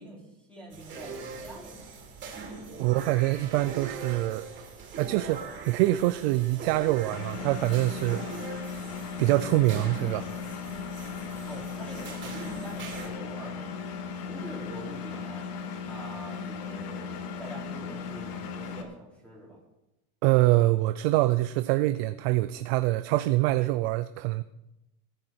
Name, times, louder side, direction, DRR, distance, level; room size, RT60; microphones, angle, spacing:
voice 1, 0.0-2.0 2.8-3.1 11.5-13.7 14.3-15.5 15.8-19.6, right 1 dB, 5° left, -5 dB, 3.5 m, -45 dB
sound 1, 0.7-13.1, right 4 dB, 25° right, 3.8 m, -42 dB
voice 2, 2.8-4.5 5.0-8.3 9.2-10.3 20.2-24.4, right 17 dB, 45° right, 13 dB, 0.5 m, -25 dB
Engine, 7.1-18.8, left 6 dB, 85° left, 2.4 m, -37 dB
19.0 x 10.5 x 4.5 m, 0.91 s
supercardioid pair, 160°, 45 cm